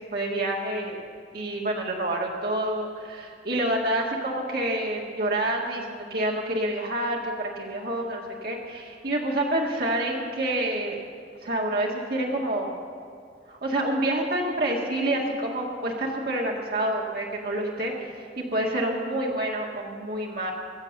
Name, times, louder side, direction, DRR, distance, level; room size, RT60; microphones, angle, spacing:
voice 1, 0.1-1.0 1.3-11.0 11.4-12.8 13.5-18.1 18.4-20.5, right 1 dB, 60° right, -2 dB, 1.9 m, -28 dB
22.0 x 7.7 x 6.6 m, 2.4 s
head